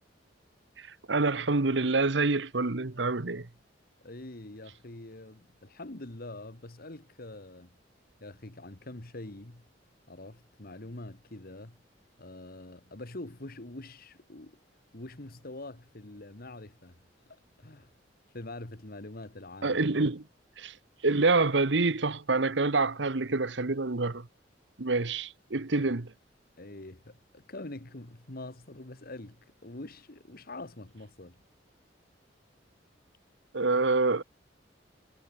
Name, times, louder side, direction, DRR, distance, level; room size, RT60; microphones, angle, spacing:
voice 1, 0.8-3.5 19.6-20.2 20.6-20.8 21.0-24.3 24.8-26.1 33.5-34.2, right 3 dB, 70° right, 1.2 m, -27 dB
voice 2, 4.0-7.8 8.2-9.7 10.1-11.8 12.2-14.6 14.9-17.0 17.3-17.9 18.3-19.8 25.8-25.9 26.6-31.4, left 2 dB, 55° left, 2.0 m, -44 dB
head